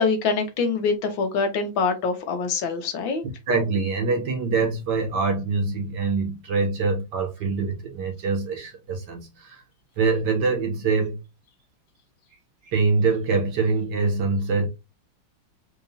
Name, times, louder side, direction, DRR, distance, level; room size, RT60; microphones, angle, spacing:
voice 1, 0.0-3.2, left 4 dB, 70° left, 1.5 m, -24 dB
voice 2, 3.5-9.6 10.0-11.2 12.7-14.7, right 4 dB, 60° right, 1.4 m, -24 dB
4.7 x 2.8 x 2.6 m
omnidirectional pair, 2.3 m